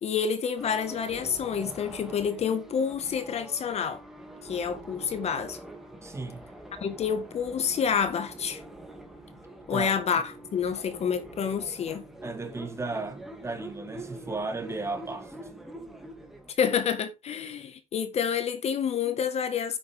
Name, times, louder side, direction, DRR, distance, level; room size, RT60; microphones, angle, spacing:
voice 1, 0.0-4.0 4.4-5.6 6.8-8.6 9.7-12.0 16.6-19.8, left 7 dB, 50° left, 1.7 m, -28 dB
sound 1, 0.6-16.5, right 1 dB, ahead, 2.8 m, -45 dB
voice 2, 5.9-6.4 9.7-9.9 12.2-15.3, right 3 dB, 20° right, 2.8 m, -35 dB
10.5 x 8.3 x 3.7 m
cardioid pair, 120°, 14 cm